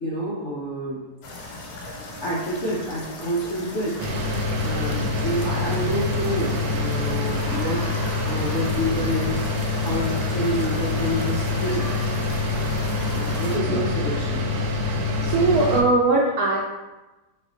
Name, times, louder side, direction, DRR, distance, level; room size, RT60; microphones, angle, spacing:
voice 1, 0.0-1.1 2.2-7.9 8.2-9.5 9.7-11.9 13.1-14.5, equal, 85° left, -6 dB, 0.6 m, -28 dB
sound 1, 1.2-13.6, left 2 dB, 65° left, 1.0 m, -37 dB
sound 2, 4.0-15.8, left 3 dB, 85° right, 1.4 m, -25 dB
voice 2, 13.2-13.8 15.2-16.6, right 3 dB, 70° right, -3 dB, 0.9 m, -21 dB
4.4 x 2.5 x 3.6 m, 1.1 s
omnidirectional pair, 2.1 m